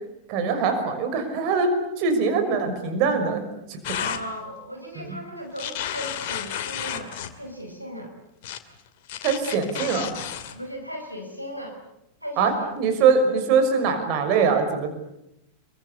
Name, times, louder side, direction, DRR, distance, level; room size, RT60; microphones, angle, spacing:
voice 1, 0.3-3.8 5.0-5.2 9.2-10.1 12.4-14.9, right 5 dB, 45° right, 6 dB, 5.9 m, -23 dB
sound 1, 3.8-4.2 5.6-7.3 8.4-8.6 9.1-10.5, left 10 dB, 50° left, 2.6 m, -32 dB
voice 2, 3.9-8.1 10.5-11.8 12.2-12.7, equal, 90° right, 3 dB, 5.0 m, -37 dB
28.0 x 23.5 x 8.4 m, 0.86 s
figure-of-eight pair, 90°, 0 cm